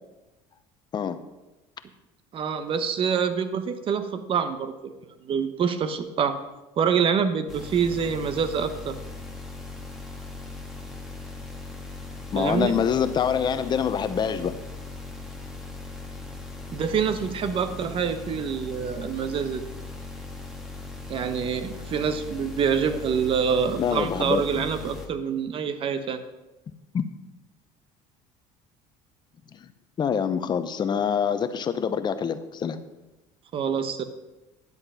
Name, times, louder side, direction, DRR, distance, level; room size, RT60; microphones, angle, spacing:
voice 1, 2.3-4.9 5.2-6.4 6.8-9.0 12.3-12.8 16.7-19.6 21.1-26.2 33.5-34.0, right 7 dB, 40° right, 10 dB, 1.1 m, -26 dB
sound 1, 7.5-25.1, left 3 dB, 5° right, 1.6 m, -39 dB
voice 2, 12.3-14.5 23.8-24.6 26.9-27.0 30.0-32.8, left 7 dB, 35° left, 10 dB, 0.8 m, -25 dB
11.0 x 7.8 x 5.6 m, 1.0 s
cardioid pair, 125°, 13 cm